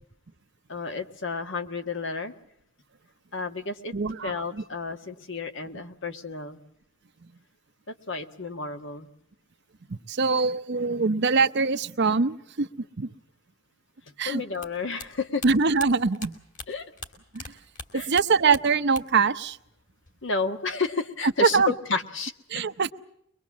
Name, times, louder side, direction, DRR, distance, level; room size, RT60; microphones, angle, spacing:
voice 1, 0.7-2.3 3.3-3.9 4.2-6.6 7.9-9.1 14.2-15.4 16.7-16.9 17.9-18.1 20.2-22.3, left 4 dB, 65° left, 7 dB, 1.6 m, -31 dB
voice 2, 3.9-4.3 10.1-12.7 13.0-13.1 14.2-14.4 15.4-16.3 17.3-17.4 17.9-19.6 21.4-21.7 22.5-22.9, right 4 dB, 60° right, 11 dB, 0.8 m, -23 dB
sound 1, 14.5-17.5 17.7-19.3 19.5-20.3, left 4 dB, 40° left, 2.8 m, -41 dB
23.5 x 22.0 x 7.3 m, 0.74 s
head